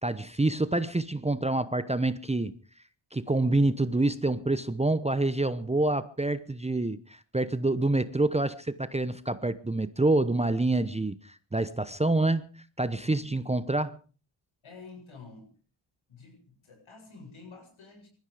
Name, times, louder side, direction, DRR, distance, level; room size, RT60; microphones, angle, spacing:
voice 1, 0.0-2.6 3.1-12.4 12.8-14.0, right 2 dB, 15° right, 14 dB, 0.9 m, -27 dB
voice 2, 14.6-15.5 16.1-18.1, left 4 dB, 70° left, 3 dB, 7.7 m, -49 dB
20.5 x 14.0 x 5.0 m, 0.38 s
cardioid pair, 65°, 50 cm